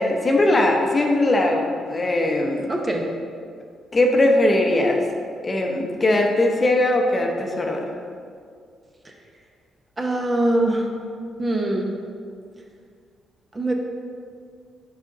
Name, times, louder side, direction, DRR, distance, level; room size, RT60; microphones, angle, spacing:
voice 1, 0.0-2.7 3.9-5.0 5.4-7.9, left 1 dB, 30° left, 2 dB, 0.8 m, -20 dB
voice 2, 2.7-3.1 9.0-9.1 10.0-10.9 11.4-12.0 13.5-13.7, right 1 dB, 25° right, 1 dB, 0.8 m, -23 dB
6.1 x 5.0 x 3.9 m, 2.2 s
cardioid pair, 90°, 0 cm